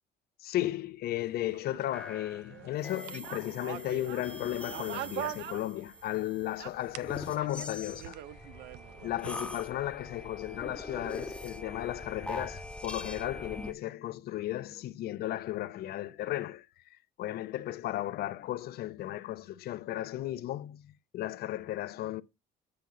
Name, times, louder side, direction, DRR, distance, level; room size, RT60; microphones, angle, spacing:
voice 1, 0.4-8.2 9.0-16.7 17.2-22.2, left 14 dB, 65° left, 0.6 m, -35 dB
sound 1, 1.2-6.2 6.5-9.3, right 14 dB, 85° right, 0.6 m, -43 dB
sound 2, 1.9-13.7, left 1 dB, 5° left, 0.9 m, -43 dB
7.8 x 7.0 x 3.9 m
cardioid pair, 110°, 17 cm